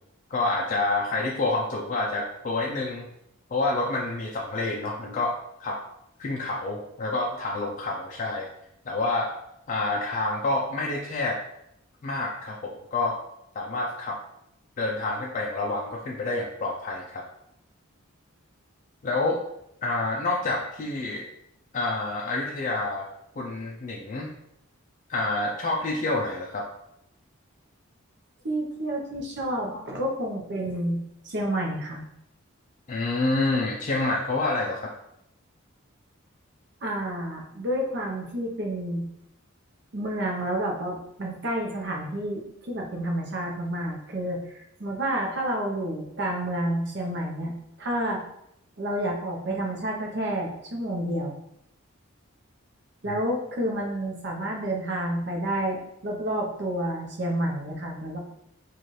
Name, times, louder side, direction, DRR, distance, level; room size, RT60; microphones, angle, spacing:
voice 1, 0.3-3.1 3.5-5.8 6.2-8.5 8.9-9.3 9.7-11.4 12.0-13.2 13.6-14.2 14.8-17.2 19.0-19.4 19.8-21.2 21.7-23.1 23.4-24.3 25.1-26.7 32.9-34.9 53.1-53.2, left 2 dB, 35° left, -1 dB, 0.3 m, -28 dB
voice 2, 28.4-31.0 31.2-32.0 36.8-39.0 39.9-48.2 48.8-51.4 53.0-58.2, right 1 dB, 55° right, 0 dB, 0.7 m, -29 dB
4.0 x 2.4 x 3.1 m, 0.79 s
head